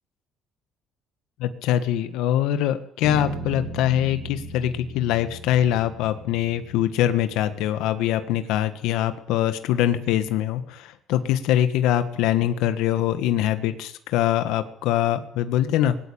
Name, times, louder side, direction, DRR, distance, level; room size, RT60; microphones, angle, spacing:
voice 1, 1.4-16.0, left 12 dB, 75° left, 9 dB, 1.6 m, -23 dB
Bass guitar, 3.0-7.5, right 2 dB, 15° right, 4.8 m, -37 dB
19.5 x 17.5 x 8.8 m, 0.66 s
cardioid pair, 180°, 0 cm